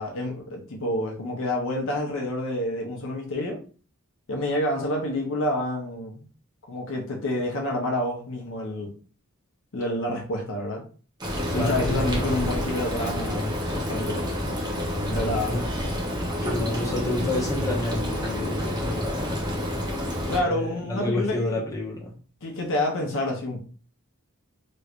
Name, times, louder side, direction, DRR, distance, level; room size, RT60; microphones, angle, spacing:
voice 1, 0.0-3.6 4.3-6.2 6.7-8.9 9.7-10.8 11.5-14.3 14.9-15.6 20.3-21.6 22.4-23.6, left 1 dB, 60° left, 0.8 m, -28 dB
Frying (food), 11.2-20.4, equal, 20° right, 0.8 m, -28 dB
voice 2, 11.5-12.2 15.4-15.6 16.4-19.5 20.4-22.1, left 1 dB, 15° left, 1.0 m, -29 dB
3.1 x 3.1 x 2.4 m
head